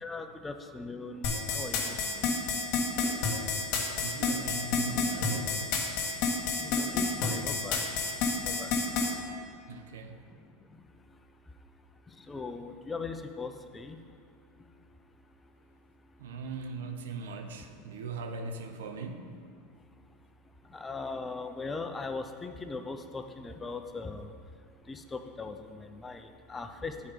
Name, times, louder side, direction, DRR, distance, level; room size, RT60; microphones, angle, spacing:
voice 1, 0.0-2.3 6.6-8.0 8.5-8.7 12.3-14.0 20.7-24.3 24.9-26.9, left 3 dB, 15° left, 6 dB, 0.5 m, -39 dB
sound 1, 1.2-9.1, left 4 dB, 60° left, 1.4 m, -29 dB
voice 2, 3.9-5.6 9.7-10.2 16.2-19.3, right 3 dB, 85° right, 6 dB, 0.6 m, -40 dB
8.2 x 4.4 x 5.0 m, 2.1 s
supercardioid pair, 115°, 0 cm